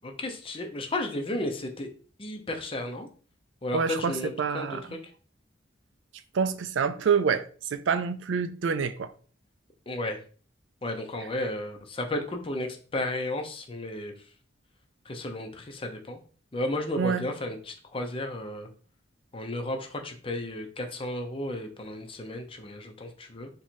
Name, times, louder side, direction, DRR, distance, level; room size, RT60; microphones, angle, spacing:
voice 1, 0.0-1.9 2.2-3.1 3.6-4.8 9.9-10.2 10.8-14.1 15.1-16.2 16.5-18.7 19.3-23.5, left 1 dB, 30° left, 0.6 m, -33 dB
voice 2, 3.7-5.0 6.3-9.1 17.0-17.3, right 6 dB, 70° right, 0.4 m, -27 dB
3.1 x 2.8 x 4.4 m
head